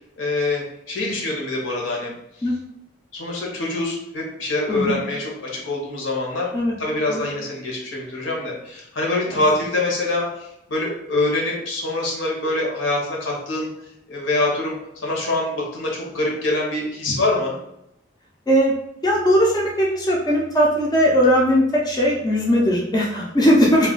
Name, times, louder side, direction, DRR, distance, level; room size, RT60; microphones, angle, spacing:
voice 1, 0.2-2.1 3.1-6.5 6.8-13.7 14.1-14.8 15.0-17.6, left 2 dB, 85° left, -2 dB, 0.9 m, -24 dB
voice 2, 19.0-23.9, equal, 20° left, -3 dB, 0.4 m, -18 dB
2.3 x 2.2 x 3.6 m, 0.82 s
head